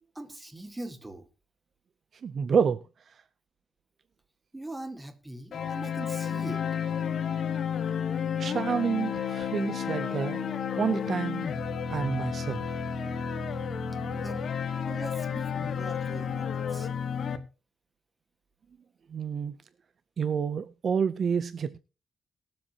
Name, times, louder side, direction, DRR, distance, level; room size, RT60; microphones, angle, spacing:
voice 1, 0.1-1.3 4.5-6.7 14.1-14.5 14.9-16.9, right 1 dB, 10° right, 1.5 m, -41 dB
voice 2, 2.2-3.2 8.4-10.5 10.8-11.5 11.9-12.8 19.1-19.5 20.2-21.8, right 6 dB, 50° right, 0.5 m, -29 dB
sound 1, 5.5-17.4, left 7 dB, 60° left, 1.2 m, -31 dB
22.5 x 7.6 x 2.8 m
cardioid pair, 140°, 0 cm